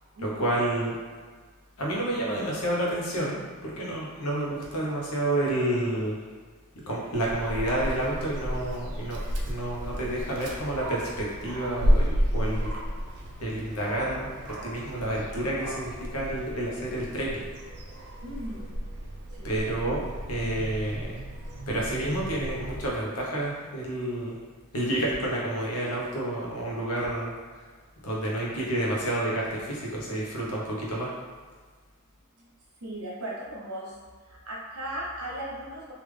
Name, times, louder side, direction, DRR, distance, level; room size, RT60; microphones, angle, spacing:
voice 1, 0.2-1.0 1.8-6.2 6.9-12.7 13.4-17.5 19.4-21.2 21.7-24.3 24.7-27.3 28.0-31.1, right 1 dB, 85° left, -4 dB, 0.9 m, -29 dB
Dog, 7.1-22.9, equal, 90° right, 0.5 m, -32 dB
voice 2, 18.2-18.7 19.4-19.5 32.8-34.0 34.3-35.9, right 1 dB, 75° right, -5 dB, 1.0 m, -37 dB
3.3 x 2.5 x 3.3 m, 1.6 s
head